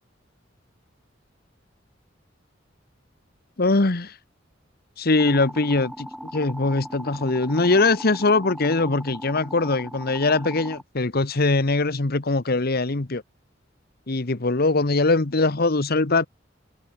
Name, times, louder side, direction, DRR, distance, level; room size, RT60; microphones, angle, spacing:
voice 1, 3.6-4.1 5.0-6.1 6.3-13.2 14.1-16.3, left 3 dB, 55° left, 1.2 m, -22 dB
sound 1, 5.2-10.8, equal, ahead, 3.0 m, -39 dB
head